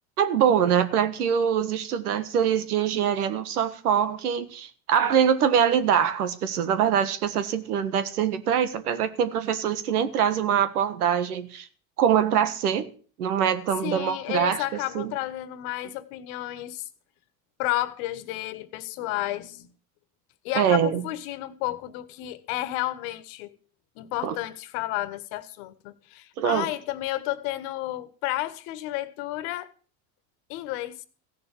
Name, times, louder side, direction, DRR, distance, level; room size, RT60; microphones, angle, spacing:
voice 1, 0.2-11.7 12.0-12.9 13.2-14.6 14.9-15.1 20.5-21.0 24.2-24.3 26.4-26.7, right 8 dB, 90° right, 1.6 m, -24 dB
voice 2, 13.8-16.9 17.6-19.7 20.4-23.5 23.9-29.7 30.5-31.0, left 15 dB, 70° left, 1.5 m, -32 dB
15.5 x 6.9 x 8.4 m
hypercardioid pair, 80°, 44 cm